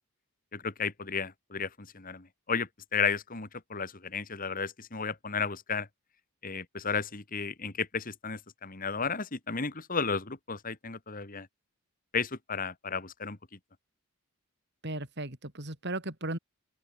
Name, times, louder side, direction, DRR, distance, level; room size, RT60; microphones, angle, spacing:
voice 1, 0.5-5.9 6.4-11.5 12.1-13.6, left 5 dB, 40° left, 1.8 m, -33 dB
voice 2, 14.8-16.4, right 2 dB, 50° right, 4.3 m, -36 dB
open air
head